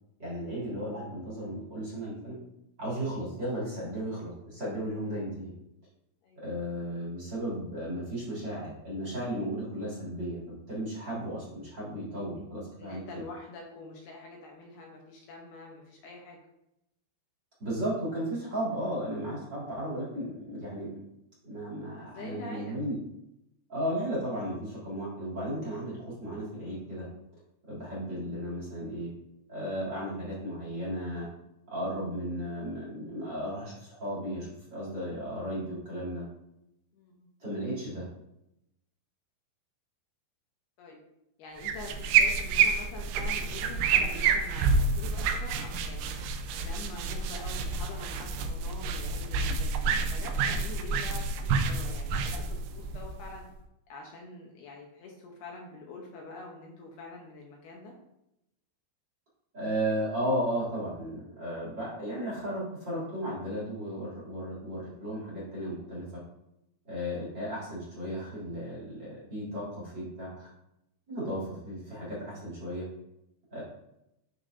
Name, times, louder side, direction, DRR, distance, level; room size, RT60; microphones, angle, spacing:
voice 1, 0.2-2.4 2.8-5.5 6.3-13.2 17.6-20.9 21.4-23.0 23.7-27.1 27.7-29.1 29.5-31.3 31.7-36.2 37.4-38.0 59.5-66.2 66.8-70.5 71.1-72.9 73.5-73.6, equal, 25° right, -7 dB, 2.8 m, -35 dB
voice 2, 12.8-16.4 22.0-22.8 36.9-37.3 40.8-41.0 41.4-46.1 46.6-53.5 53.9-57.9, left 3 dB, 75° left, 0 dB, 2.4 m, -45 dB
sound 1, 41.6-53.5, right 5 dB, 80° right, 3.1 m, -28 dB
12.0 x 4.7 x 2.7 m, 0.85 s
omnidirectional pair, 5.7 m